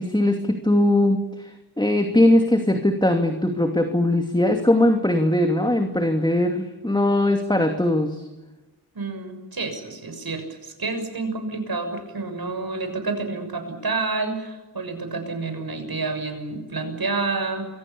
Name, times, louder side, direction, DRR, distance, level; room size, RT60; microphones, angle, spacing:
voice 1, 0.0-8.2, left 1 dB, 10° left, 5 dB, 2.6 m, -20 dB
voice 2, 8.9-17.7, right 3 dB, 60° right, 6 dB, 6.6 m, -29 dB
28.5 x 23.5 x 7.1 m, 1.1 s
wide cardioid pair, 65°, 41 cm